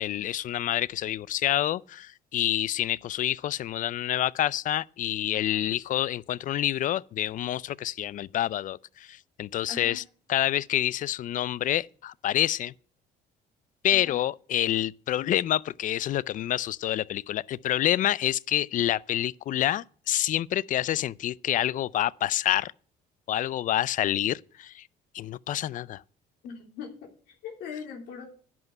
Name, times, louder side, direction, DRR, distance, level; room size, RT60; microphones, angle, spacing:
voice 1, 0.0-10.0 10.3-12.7 13.8-22.7 23.3-24.9 25.1-26.0, left 12 dB, 50° left, 0.4 m, -27 dB
voice 2, 9.7-10.0 13.9-14.2 26.4-28.2, left 6 dB, 90° left, 3.5 m, -41 dB
11.0 x 6.1 x 8.9 m
cardioid pair, 110°, 17 cm